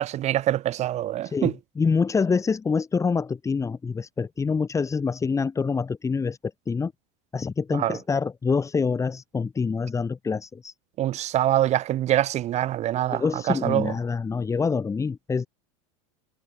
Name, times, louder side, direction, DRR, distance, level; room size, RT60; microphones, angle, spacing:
voice 1, 0.0-1.5 7.8-8.0 11.0-13.9, right 13 dB, 40° right, 3.1 m, -24 dB
voice 2, 1.2-6.9 7.3-10.7 13.1-15.5, left 5 dB, 15° left, 3.1 m, -26 dB
supercardioid pair, 115°, 17 cm